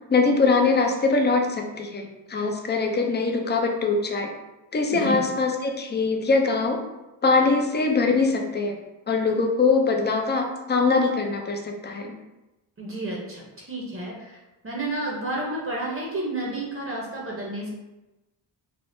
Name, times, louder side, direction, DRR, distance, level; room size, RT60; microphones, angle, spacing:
voice 1, 0.1-4.3 4.7-6.8 7.2-8.8 9.1-12.1, left 4 dB, 25° left, 3 dB, 0.5 m, -22 dB
voice 2, 4.9-5.3 12.8-14.4 14.6-17.7, right 1 dB, 30° right, -3 dB, 0.8 m, -31 dB
3.5 x 2.0 x 2.6 m, 1.0 s
cardioid pair, 50°, 47 cm